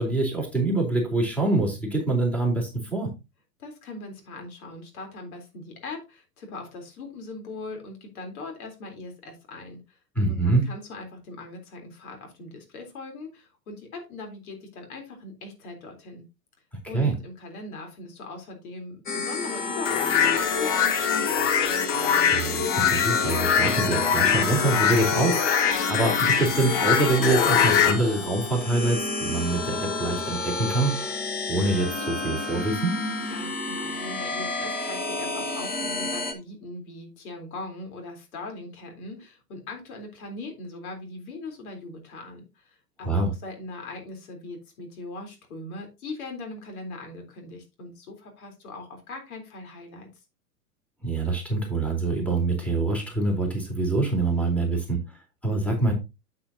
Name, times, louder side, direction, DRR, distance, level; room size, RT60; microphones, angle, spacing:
voice 1, 0.0-3.1 10.2-10.6 16.9-17.1 22.3-31.1 31.5-33.0 43.0-43.3 51.0-55.9, right 2 dB, 5° left, 1 dB, 3.7 m, -25 dB
voice 2, 3.6-10.0 10.3-16.2 16.9-21.5 33.3-50.1, left 3 dB, 65° left, 3 dB, 3.7 m, -40 dB
sound 1, 19.1-36.3, left 2 dB, 20° left, 1.7 m, -31 dB
sound 2, 19.9-27.9, left 8 dB, 45° left, 1.7 m, -23 dB
8.6 x 8.4 x 2.7 m, 0.25 s
hypercardioid pair, 105°, 47 cm